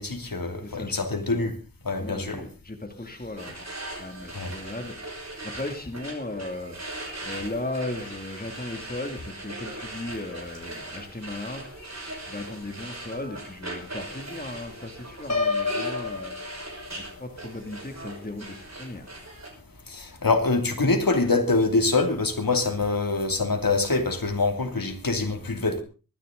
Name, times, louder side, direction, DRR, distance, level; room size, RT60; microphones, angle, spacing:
voice 1, 0.0-1.5 1.8-2.4 4.3-4.5 19.9-25.8, left 3 dB, 65° left, 2.7 m, -25 dB
voice 2, 0.6-1.5 2.0-3.7 4.0-5.1 5.4-6.9 7.2-11.8 12.3-16.3 17.0-19.1, left 2 dB, 25° left, 2.5 m, -36 dB
sound 1, 3.4-19.5, right 2 dB, 45° right, 5.8 m, -39 dB
Piano, 15.3-17.2, left 4 dB, 45° left, 2.8 m, -29 dB
23.5 x 10.5 x 3.8 m
wide cardioid pair, 65°, 37 cm